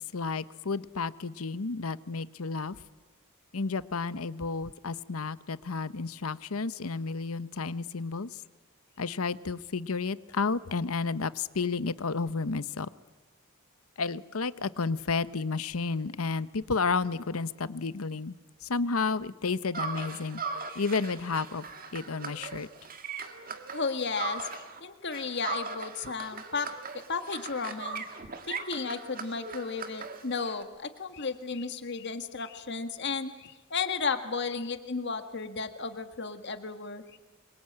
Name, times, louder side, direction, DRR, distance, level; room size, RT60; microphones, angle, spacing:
voice 1, 0.0-2.8 3.5-8.4 9.0-12.9 14.0-18.4 18.6-20.4 20.7-21.7 21.9-22.7, left 4 dB, 90° left, 15 dB, 0.9 m, -31 dB
sound 1, 19.7-24.8 25.1-30.6, right 4 dB, 40° right, 2.0 m, -39 dB
voice 2, 23.7-26.7 27.1-28.0 28.5-37.2, left 4 dB, 55° left, 8 dB, 1.8 m, -34 dB
26.5 x 23.5 x 8.8 m, 1.2 s
head